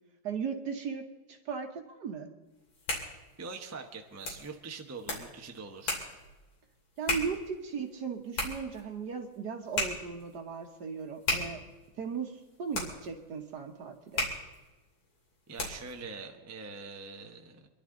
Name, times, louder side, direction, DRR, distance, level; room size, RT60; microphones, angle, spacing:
voice 1, 0.2-2.3 7.0-11.6 12.0-14.3, right 6 dB, 55° right, 4 dB, 1.6 m, -37 dB
sound 1, 2.5-16.0, left 2 dB, 80° left, 3.9 m, -38 dB
voice 2, 3.4-6.0 15.5-17.7, right 4 dB, 20° right, 4 dB, 0.5 m, -43 dB
26.0 x 11.5 x 3.9 m, 1.2 s
omnidirectional pair, 2.4 m